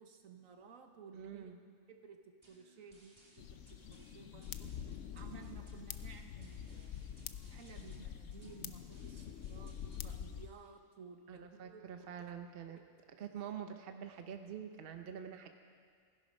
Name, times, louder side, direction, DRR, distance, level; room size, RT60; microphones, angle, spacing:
voice 1, 0.0-1.6 1.9-3.6 3.9-4.7 5.1-7.0 7.5-12.3 12.7-12.8, right 6 dB, 70° right, 5 dB, 1.4 m, -56 dB
voice 2, 1.1-1.6 11.3-12.8 13.2-15.5, right 8 dB, 50° right, 6 dB, 0.9 m, -46 dB
sound 1, 2.4-10.4, right 2 dB, 20° right, 2.2 m, -66 dB
sound 2, 3.4-10.5, left 9 dB, 70° left, 0.9 m, -46 dB
16.5 x 11.0 x 5.4 m, 2.1 s
omnidirectional pair, 1.4 m